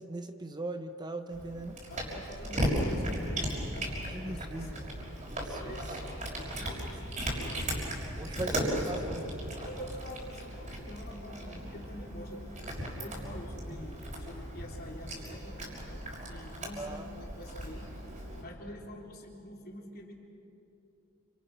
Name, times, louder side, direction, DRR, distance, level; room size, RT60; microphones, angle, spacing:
voice 1, 0.0-1.8 4.1-4.7 5.3-5.8 8.2-9.3 13.8-13.9 16.8-17.0, right 2 dB, 20° right, 7 dB, 0.9 m, -39 dB
Cat, 1.3-18.4, equal, 40° right, 6.1 m, -36 dB
voice 2, 1.9-5.0 5.6-7.9 8.3-8.6 9.6-18.0 18.4-20.1, equal, 50° left, 0 dB, 3.8 m, -46 dB
29.0 x 27.5 x 6.1 m, 2.8 s
head